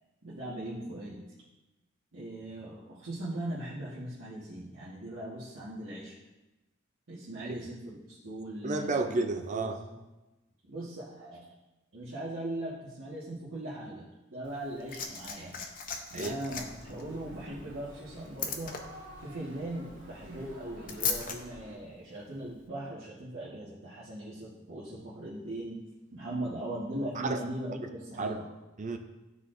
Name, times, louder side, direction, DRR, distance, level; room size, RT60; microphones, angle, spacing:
voice 1, 0.2-1.2 2.1-6.1 7.1-9.0 9.5-10.0 10.7-11.4 11.9-15.5 16.1-18.7 19.2-25.8 26.1-28.4, right 1 dB, 65° right, -10 dB, 1.4 m, -39 dB
voice 2, 8.6-9.8 16.1-16.4 27.2-27.4 28.2-28.4 28.8-29.0, right 3 dB, 35° right, 6 dB, 0.5 m, -31 dB
Liquid, 14.4-21.4 22.4-22.6, left 6 dB, 40° left, 0.7 m, -38 dB
sound 1, 16.5-21.8, equal, 90° right, 1.6 m, -50 dB
12.5 x 4.1 x 2.6 m, 1.1 s
head